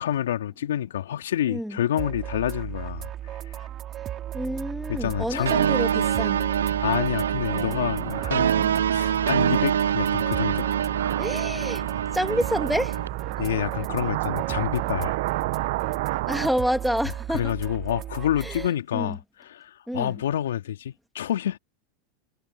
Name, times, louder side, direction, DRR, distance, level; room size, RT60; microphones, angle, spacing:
voice 1, 0.0-3.1 4.9-5.5 6.8-8.5 8.9-10.6 13.4-15.1 17.3-21.6, left 11 dB, 75° left, 2.6 m, -28 dB
voice 2, 1.5-1.8 4.3-6.5 7.6-7.8 11.2-11.9 12.1-13.0 16.3-17.5 18.4-19.2 19.9-20.2, equal, ahead, 2.8 m, -28 dB
sound 1, 2.0-18.7, right 11 dB, 40° right, 3.8 m, -36 dB
sound 2, 5.0-16.5, right 19 dB, 65° right, 1.3 m, -33 dB
sound 3, 5.5-13.1, right 8 dB, 80° right, 0.5 m, -25 dB
hypercardioid pair, 90°, 0 cm